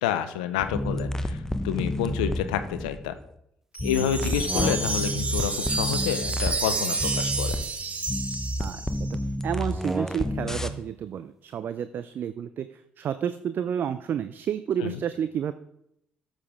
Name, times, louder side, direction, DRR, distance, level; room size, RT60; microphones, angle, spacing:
voice 1, 0.0-3.1 3.8-7.6 14.8-15.0, left 10 dB, 85° left, 10 dB, 0.6 m, -29 dB
sound 1, 0.6-3.3 3.8-7.7 8.1-10.7, left 1 dB, 10° left, 0.9 m, -30 dB
Wind chime, 3.7-9.1, right 3 dB, 35° right, 1.5 m, -30 dB
voice 2, 4.0-4.4 8.6-8.8 9.4-15.5, right 8 dB, 55° right, 12 dB, 0.5 m, -30 dB
sound 2, 4.2-5.3 6.6-8.2 9.6-10.6, right 1 dB, 10° right, 0.6 m, -35 dB
12.5 x 7.5 x 3.5 m, 0.76 s
hypercardioid pair, 45°, 4 cm